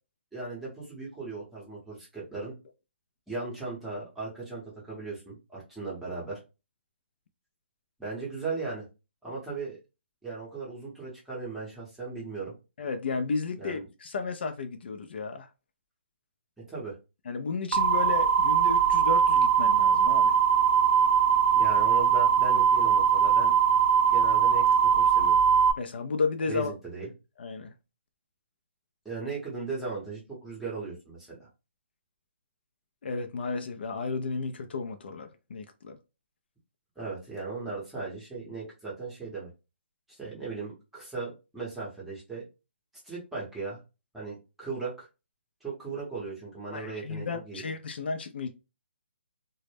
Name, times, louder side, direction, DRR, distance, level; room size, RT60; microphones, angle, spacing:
voice 1, 0.3-2.5 3.3-6.4 8.0-8.9 9.2-9.8 10.2-12.5 13.6-13.8 16.7-17.0 21.5-23.6 24.1-25.4 26.5-27.1 29.0-31.5 37.0-39.5 40.1-42.4 43.0-43.8 44.1-45.1 45.6-47.6, right 4 dB, 5° right, 0.7 m, -37 dB
voice 2, 12.8-15.5 17.3-20.3 25.8-26.7 27.4-27.7 33.0-36.0 46.7-48.5, left 4 dB, 55° left, 0.3 m, -33 dB
sound 1, 17.7-25.7, right 7 dB, 75° right, 0.3 m, -21 dB
2.1 x 2.0 x 3.2 m
hypercardioid pair, 160°, 7 cm